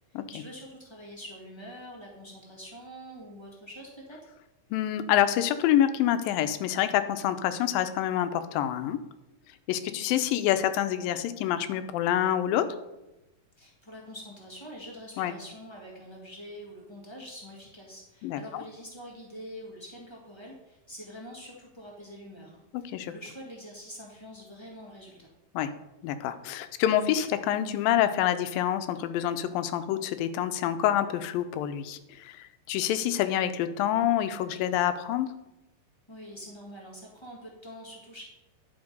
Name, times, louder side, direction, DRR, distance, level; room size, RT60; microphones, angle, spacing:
voice 1, 0.1-4.3 13.6-25.3 36.1-38.2, equal, 30° left, -3 dB, 0.5 m, -45 dB
voice 2, 4.7-9.0 9.7-12.7 15.2-15.3 18.2-18.6 22.7-23.1 25.5-25.7 26.0-35.3, left 11 dB, 85° left, 11 dB, 2.4 m, -27 dB
10.5 x 4.8 x 5.3 m, 0.95 s
omnidirectional pair, 4.0 m